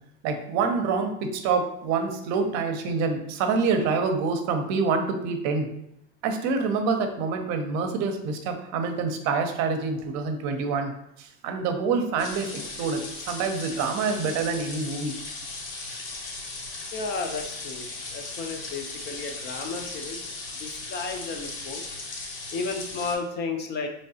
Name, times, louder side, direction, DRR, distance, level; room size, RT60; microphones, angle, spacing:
voice 1, 0.2-5.7 6.2-10.9 11.2-15.1 15.8-16.0, right 4 dB, 50° right, 6 dB, 0.7 m, -26 dB
sound 1, 12.2-23.1, left 3 dB, 65° left, 1.2 m, -37 dB
voice 2, 16.9-20.3 20.6-21.8 22.5-23.9, left 4 dB, 30° left, 5 dB, 0.6 m, -33 dB
4.6 x 3.2 x 2.7 m, 0.78 s
supercardioid pair, 120°, 35 cm